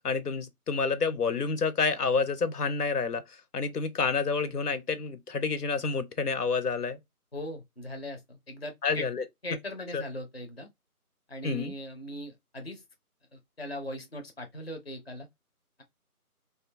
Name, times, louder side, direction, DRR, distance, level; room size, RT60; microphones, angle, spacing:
voice 1, 0.0-7.0 8.8-9.2 9.9-10.0 11.4-11.7, left 4 dB, 90° left, 0.7 m, -29 dB
voice 2, 7.3-9.1 9.4-10.7 11.3-12.8 13.3-15.3, left 1 dB, 45° left, 0.5 m, -39 dB
2.5 x 2.2 x 2.5 m
figure-of-eight pair, 165°, 46 cm